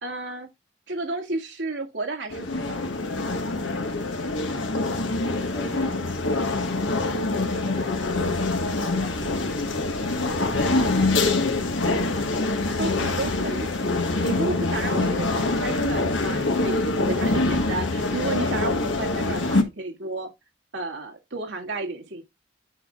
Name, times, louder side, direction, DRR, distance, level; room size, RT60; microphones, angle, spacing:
voice 1, 0.0-0.5 0.9-2.8 12.8-13.7 14.2-20.3 20.7-22.2, right 2 dB, 80° right, 2.0 m, -32 dB
sound 1, 2.3-19.6, left 2 dB, 85° left, 1.4 m, -25 dB
voice 2, 5.5-6.0 7.1-8.3 8.6-11.5 14.8-15.3, equal, 40° left, 2.3 m, -39 dB
9.7 x 6.3 x 2.4 m
head